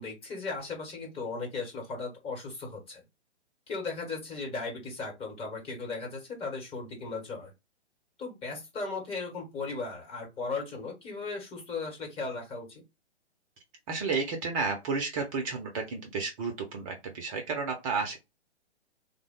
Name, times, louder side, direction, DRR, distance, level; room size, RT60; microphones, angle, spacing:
voice 1, 0.0-3.0 3.7-7.5 8.2-12.8, left 4 dB, 15° left, 0 dB, 1.1 m, -37 dB
voice 2, 13.9-18.2, right 4 dB, 30° right, 4 dB, 0.6 m, -32 dB
3.5 x 2.1 x 3.5 m, 0.24 s
figure-of-eight pair, 130°, 34 cm